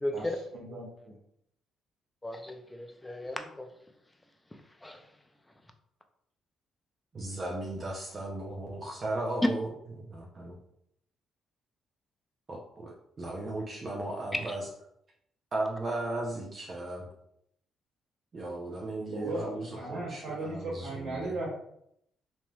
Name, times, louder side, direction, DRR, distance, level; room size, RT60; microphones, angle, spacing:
voice 1, 0.0-0.4 2.2-3.7 4.8-5.0 14.4-14.6, left 1 dB, 15° left, 6 dB, 0.4 m, -36 dB
voice 2, 0.5-1.2 19.1-21.5, right 2 dB, 80° right, -7 dB, 1.3 m, -37 dB
voice 3, 7.1-9.7 10.0-10.6 12.5-14.6 15.5-17.1 18.3-21.4, right 2 dB, 40° right, -2 dB, 0.5 m, -36 dB
3.1 x 2.6 x 2.2 m, 0.73 s
cardioid pair, 90°, 0 cm